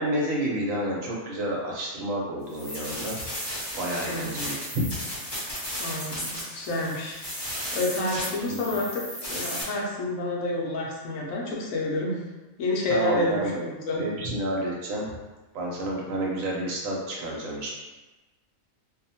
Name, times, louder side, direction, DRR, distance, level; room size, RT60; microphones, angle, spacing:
voice 1, 0.0-3.3 3.7-5.0 8.5-8.8 12.9-13.5 13.9-15.1 15.5-17.7, right 1 dB, 80° right, -2 dB, 1.1 m, -30 dB
sound 1, 2.5-9.6, equal, 25° left, 0.6 m, -35 dB
voice 2, 4.1-4.6 5.8-7.2 7.7-12.2 12.6-14.0, left 2 dB, 75° left, -2 dB, 1.0 m, -29 dB
2.8 x 2.1 x 2.7 m, 1.1 s
omnidirectional pair, 1.4 m